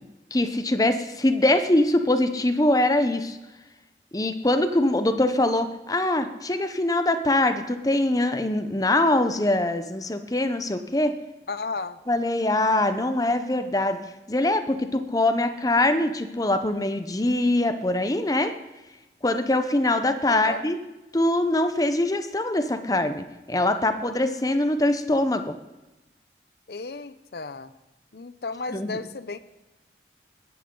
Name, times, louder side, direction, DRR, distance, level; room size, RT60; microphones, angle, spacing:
voice 1, 0.3-3.4 4.1-11.1 12.1-14.0 14.3-18.5 19.2-20.8 21.1-25.5 28.7-29.0, left 1 dB, 20° left, 9 dB, 0.8 m, -23 dB
voice 2, 11.5-12.0 20.3-20.6 26.7-27.7 28.1-29.4, left 4 dB, 60° left, 13 dB, 0.7 m, -33 dB
19.5 x 10.5 x 3.9 m, 1.0 s
head